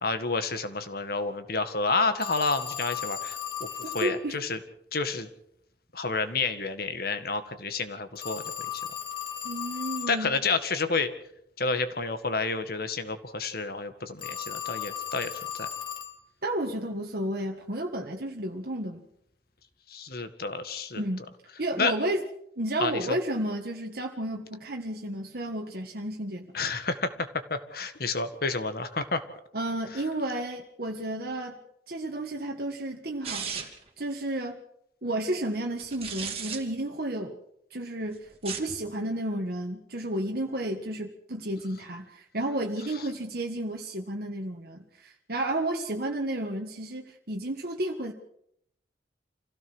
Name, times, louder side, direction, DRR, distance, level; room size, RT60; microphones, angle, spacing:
voice 1, 0.0-3.7 3.9-4.6 4.9-5.3 5.9-8.4 10.1-11.1 11.6-15.3 15.6-15.7 19.9-21.0 21.8-21.9 22.8-23.2 26.5-29.2, left 4 dB, 60° left, 9 dB, 1.9 m, -30 dB
Telephone, 2.2-4.2 8.2-10.2 14.2-16.2, left 9 dB, 30° left, 1.5 m, -36 dB
voice 2, 3.8-4.4 9.4-10.3 16.4-19.0 21.0-21.3 21.6-22.2 22.6-26.5 29.5-31.6 31.9-33.7 34.0-34.6 35.0-37.4 37.7-48.1, right 1 dB, 60° right, 2 dB, 1.7 m, -32 dB
sound 1, 33.2-33.9 35.8-36.6 38.3-38.8, right 6 dB, 35° right, 2.8 m, -35 dB
26.5 x 16.5 x 6.3 m, 0.74 s
head